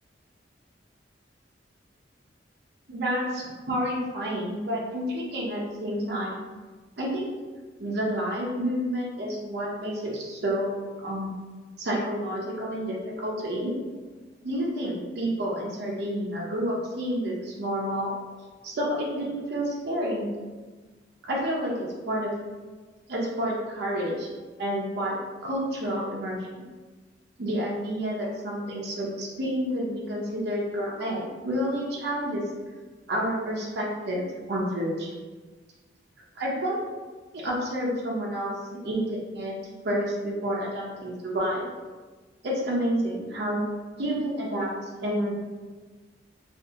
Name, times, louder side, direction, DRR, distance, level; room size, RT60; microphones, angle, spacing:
voice 1, 2.9-6.4 7.0-7.3 7.8-11.3 11.8-13.8 14.4-18.1 18.6-20.3 21.2-22.3 23.1-24.3 24.6-25.2 25.4-26.4 27.4-32.4 33.1-35.1 36.3-36.8 37.3-38.5 38.8-39.6 39.8-41.7 42.4-43.6 44.0-44.7 45.0-45.3, equal, 60° right, -4 dB, 0.6 m, -29 dB
2.8 x 2.4 x 2.4 m, 1.3 s
head